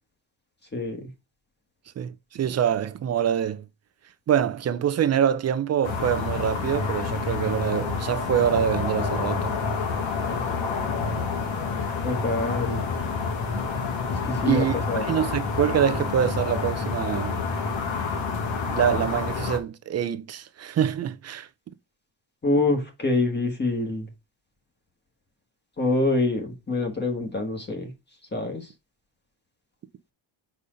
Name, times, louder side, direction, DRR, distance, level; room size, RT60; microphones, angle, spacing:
voice 1, 0.7-1.1 12.0-12.8 14.2-15.1 22.4-24.1 25.8-27.9 28.3-28.7, left 2 dB, 20° left, 1.4 m, -26 dB
voice 2, 2.0-3.6 4.3-9.5 14.4-14.7 15.0-17.4 18.7-21.5, right 9 dB, 35° right, 0.5 m, -25 dB
sound 1, 5.8-19.6, left 4 dB, 80° left, 2.0 m, -28 dB
5.3 x 4.3 x 5.0 m
cardioid pair, 160°, 46 cm